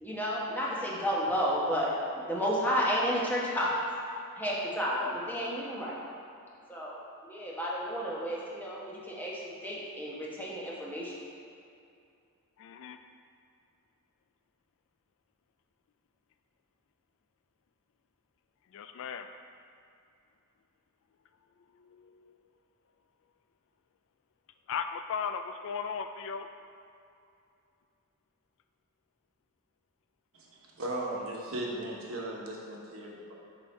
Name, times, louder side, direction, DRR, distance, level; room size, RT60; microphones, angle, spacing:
voice 1, 0.0-1.9 2.3-3.7 4.4-5.9 6.7-11.3, equal, 10° left, -6 dB, 1.0 m, -32 dB
voice 2, 12.6-13.0 18.7-19.3 21.7-22.4 24.7-26.5, left 6 dB, 60° left, 8 dB, 0.3 m, -37 dB
voice 3, 30.8-33.3, right 1 dB, 65° right, -2 dB, 1.1 m, -37 dB
6.6 x 4.2 x 4.4 m, 2.6 s
head